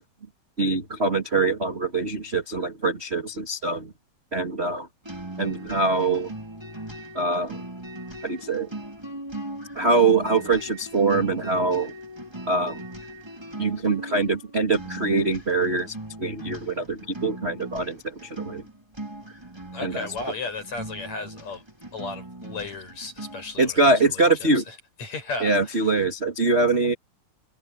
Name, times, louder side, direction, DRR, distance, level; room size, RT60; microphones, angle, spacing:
voice 1, 0.6-3.9 4.3-4.9 5.4-6.3 7.1-7.6 8.2-8.7 9.7-11.9 12.5-12.8 13.6-18.6 19.8-20.1 23.6-24.6 25.4-26.9, right 3 dB, 25° right, 1.5 m, -23 dB
sound 1, 5.0-23.6, right 1 dB, 5° right, 3.6 m, -39 dB
voice 2, 19.7-21.6 21.9-23.8 24.1-25.9, left 3 dB, 40° left, 7.7 m, -35 dB
omnidirectional pair, 4.6 m